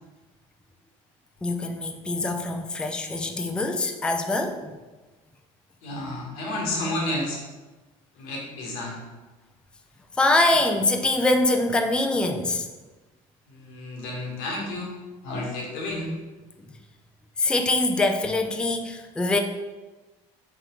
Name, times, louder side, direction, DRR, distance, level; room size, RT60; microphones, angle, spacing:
voice 1, 1.4-4.7 10.2-12.7 17.4-19.4, left 2 dB, 5° left, 5 dB, 0.4 m, -24 dB
voice 2, 5.8-7.4 8.1-9.0 13.5-14.9 15.2-16.2, left 1 dB, 85° left, -2 dB, 1.3 m, -31 dB
4.4 x 3.6 x 3.0 m, 1.2 s
supercardioid pair, 85°, 15 cm